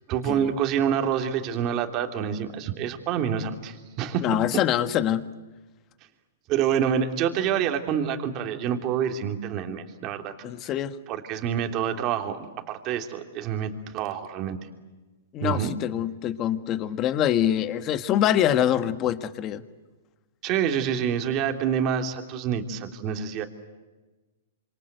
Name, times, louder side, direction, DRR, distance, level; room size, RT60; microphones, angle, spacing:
voice 1, 0.1-4.3 6.5-10.3 10.6-10.7 11.1-14.6 15.4-15.7 20.4-23.4, right 8 dB, 35° right, 5 dB, 3.1 m, -27 dB
voice 2, 4.2-5.2 10.4-10.9 15.3-19.6, left 11 dB, 30° left, 11 dB, 1.6 m, -24 dB
27.5 x 26.5 x 8.1 m, 1.2 s
hypercardioid pair, 145°, 0 cm